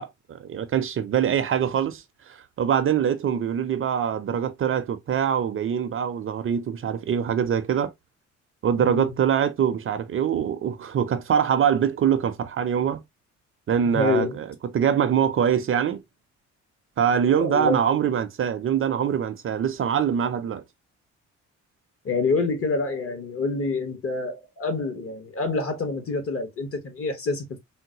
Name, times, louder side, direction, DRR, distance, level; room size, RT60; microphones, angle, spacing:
voice 1, 0.0-7.9 8.6-13.0 13.7-14.5 14.7-16.0 17.0-20.6, right 8 dB, 45° right, 0.5 m, -24 dB
voice 2, 8.8-9.1 13.9-14.4 17.4-17.8 22.0-27.6, left 3 dB, 45° left, 1.2 m, -27 dB
3.9 x 2.1 x 2.7 m
cardioid pair, 90°, 30 cm